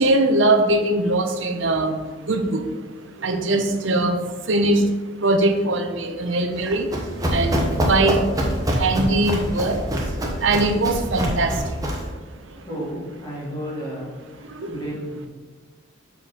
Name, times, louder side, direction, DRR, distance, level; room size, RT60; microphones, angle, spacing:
voice 1, 0.0-2.0 2.3-2.6 3.2-4.2 4.5-4.8 5.2-6.9 7.3-8.2 8.8-9.8 10.4-11.5 14.6-14.7, right 2 dB, 75° right, 6 dB, 0.8 m, -21 dB
Run, 6.5-12.1, equal, 20° right, 1.0 m, -25 dB
voice 2, 12.5-15.3, equal, 20° left, -6 dB, 2.3 m, -33 dB
6.5 x 5.1 x 4.3 m, 1.3 s
head